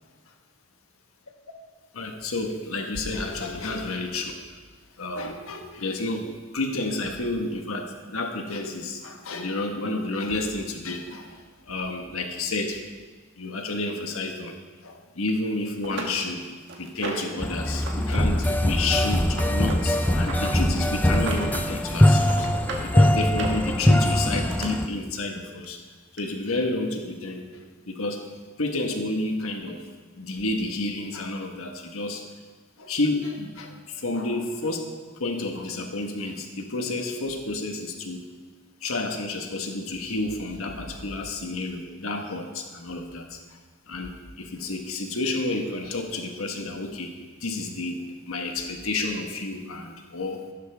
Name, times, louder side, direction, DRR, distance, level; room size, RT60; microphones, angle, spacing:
voice 1, 1.9-4.6 5.0-12.8 13.4-14.6 14.8-16.4 16.8-22.5 22.8-25.8 26.1-28.2 28.6-29.9 30.2-32.2 32.8-34.9 35.1-38.3 38.8-43.6 43.9-47.1 47.4-50.4, left 2 dB, 80° left, 3 dB, 1.4 m, -30 dB
sound 1, 15.3-15.4 15.8-17.4 17.8-18.2 18.4-20.5 21.0-21.7 22.0-22.9 23.3-24.7 25.6-25.7 26.2-26.3, right 3 dB, 55° right, 1.7 m, -36 dB
sound 2, 17.4-24.9, left 1 dB, 10° left, 0.4 m, -22 dB
15.5 x 12.5 x 3.5 m, 1.4 s
head